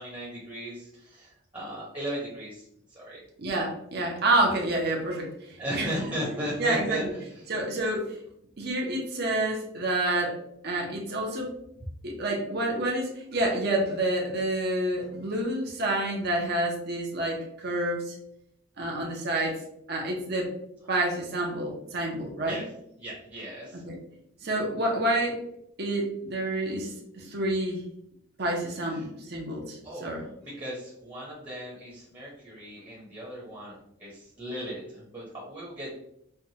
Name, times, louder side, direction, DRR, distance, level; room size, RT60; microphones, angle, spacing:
voice 1, 0.0-3.2 5.6-7.4 22.4-22.6 23.0-23.8 28.9-29.1 29.8-36.0, equal, 20° right, -6 dB, 0.9 m, -37 dB
voice 2, 3.4-5.9 6.6-7.1 7.5-8.2 8.6-10.4 10.6-11.6 12.0-18.2 18.8-19.6 19.9-20.5 20.9-22.6 23.8-24.0 24.4-25.4 25.8-27.8 28.4-30.2, right 1 dB, 50° right, -1 dB, 0.8 m, -28 dB
4.6 x 2.3 x 2.8 m, 0.75 s
head